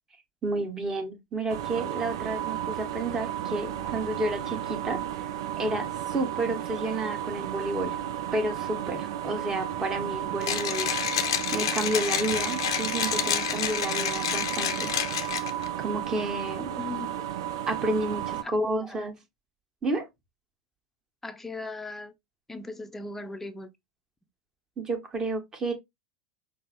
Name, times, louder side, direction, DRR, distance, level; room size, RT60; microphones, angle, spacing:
voice 1, 0.4-5.3 5.6-8.0 8.3-10.9 11.5-14.9 15.8-16.8 17.7-19.2 19.8-20.1 24.8-25.7, right 2 dB, 25° right, 1.2 m, -31 dB
sound 1, 1.5-18.4, right 11 dB, 70° right, 0.4 m, -33 dB
Mechanisms, 10.4-15.7, left 9 dB, 75° left, 0.6 m, -29 dB
voice 2, 16.8-17.3 18.4-18.5 18.8-19.0 21.2-22.1 22.5-23.7, left 3 dB, 10° left, 0.6 m, -38 dB
5.2 x 2.0 x 3.0 m
hypercardioid pair, 85°, 3 cm